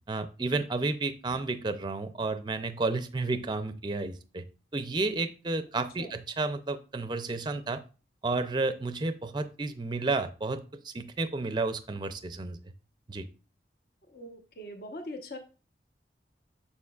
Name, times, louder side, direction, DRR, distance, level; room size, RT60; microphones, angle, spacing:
voice 1, 0.1-4.5 4.7-7.8 8.2-12.6 13.1-13.3, right 3 dB, 25° right, 10 dB, 0.5 m, -31 dB
voice 2, 14.1-15.4, left 1 dB, 55° left, 4 dB, 1.0 m, -41 dB
6.9 x 6.9 x 2.4 m, 0.34 s
head